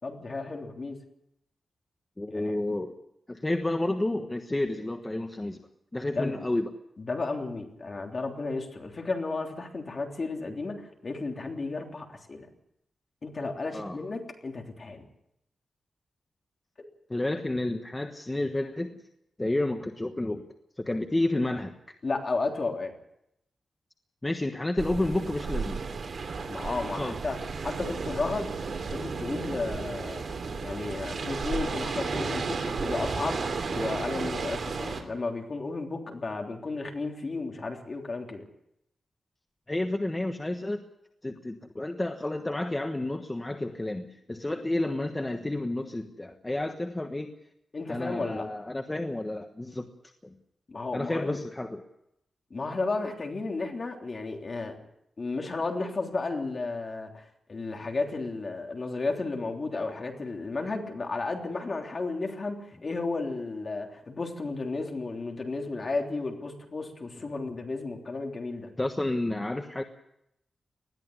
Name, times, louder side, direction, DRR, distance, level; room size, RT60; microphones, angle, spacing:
voice 1, 0.0-1.0 2.3-2.5 6.1-6.3 7.0-12.5 13.2-15.0 16.8-16.9 22.0-22.9 26.5-28.6 28.9-30.3 30.6-33.4 33.7-38.4 47.7-48.5 50.7-51.4 52.5-54.8 55.2-68.7, left 3 dB, 40° left, 2 dB, 3.3 m, -33 dB
voice 2, 2.2-3.0 3.3-5.6 5.9-6.7 13.7-14.0 17.1-18.9 19.4-20.4 20.8-21.9 24.2-25.8 26.9-27.2 39.7-40.8 41.2-47.3 47.9-49.9 50.2-50.3 50.9-51.8 68.8-69.8, left 1 dB, 15° left, 5 dB, 1.3 m, -30 dB
sound 1, 24.8-35.0, right 4 dB, 60° right, 3.0 m, -33 dB
20.5 x 13.5 x 9.6 m, 0.81 s
wide cardioid pair, 115°, 0 cm